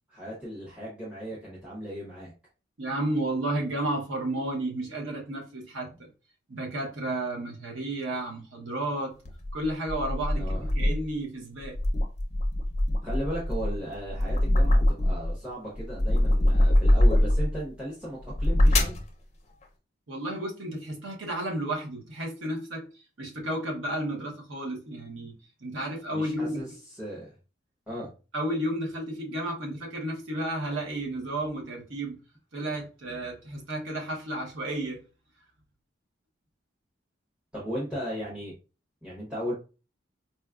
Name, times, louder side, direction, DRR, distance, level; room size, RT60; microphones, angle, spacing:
voice 1, 0.1-2.3 10.3-10.6 13.0-19.0 26.1-27.4 27.9-28.1 37.5-38.5 39.0-39.5, equal, 5° right, 0.7 m, -36 dB
voice 2, 2.8-6.1 6.5-9.1 9.5-11.8 20.1-22.9 23.2-25.4 25.6-26.6 28.3-32.2 32.5-35.0, right 1 dB, 90° right, 1.0 m, -32 dB
sound 1, 9.2-11.1 11.6-15.4 15.7-17.6 18.2-19.1, left 1 dB, 35° left, 0.5 m, -23 dB
4.2 x 2.2 x 2.3 m
head